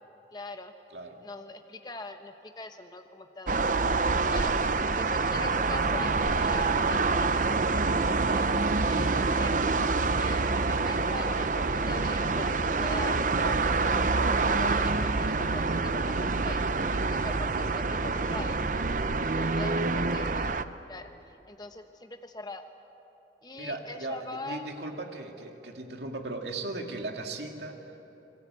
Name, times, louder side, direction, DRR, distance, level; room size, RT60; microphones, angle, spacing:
voice 1, 0.3-0.7 1.2-3.7 4.3-4.5 4.9-9.5 10.2-13.8 14.3-16.6 17.1-18.6 19.2-20.5 20.9-22.6 23.4-24.7, left 2 dB, 25° left, 6 dB, 1.0 m, -42 dB
voice 2, 0.9-1.2 4.2-4.5 17.2-17.5 19.2-19.5 23.5-27.8, right 2 dB, 70° right, 3 dB, 2.3 m, -38 dB
sound 1, 3.5-20.6, right 3 dB, 45° right, 0.6 m, -26 dB
26.0 x 21.5 x 8.3 m, 3.0 s
head